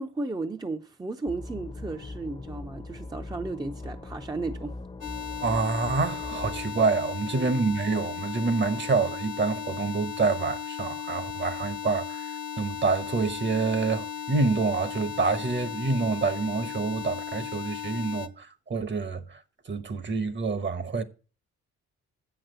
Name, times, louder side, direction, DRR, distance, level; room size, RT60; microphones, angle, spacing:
voice 1, 0.0-4.8 7.3-7.5, right 3 dB, 15° right, 0.7 m, -34 dB
sound 1, 1.3-6.7, left 2 dB, 20° left, 0.8 m, -40 dB
sound 2, 5.0-18.3, left 10 dB, 55° left, 0.9 m, -36 dB
voice 2, 5.4-19.4 19.7-21.0, right 4 dB, 35° right, 1.1 m, -27 dB
7.6 x 5.9 x 7.8 m
cardioid pair, 80°, 31 cm